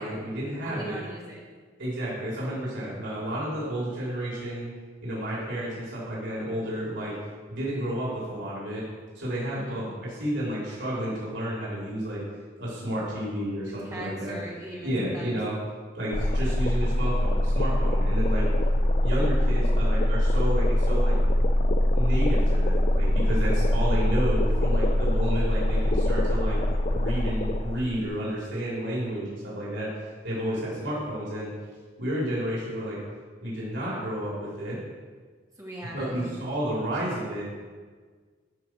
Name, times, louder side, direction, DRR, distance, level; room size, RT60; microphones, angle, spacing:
voice 1, 0.0-1.0 1.8-4.7 5.0-7.2 7.5-8.8 9.2-12.2 12.6-14.4 14.8-15.5 15.9-18.5 19.0-21.2 21.9-26.6 26.9-31.5 32.0-33.0 33.4-34.8 35.9-37.4, equal, 90° right, -6 dB, 3.4 m, -31 dB
voice 2, 0.6-1.4 9.5-9.8 13.7-15.4 35.6-36.3, right 1 dB, 20° right, -5 dB, 2.5 m, -40 dB
sound 1, 16.1-28.1, left 1 dB, 40° left, 0.6 m, -23 dB
13.5 x 4.8 x 6.1 m, 1.5 s
head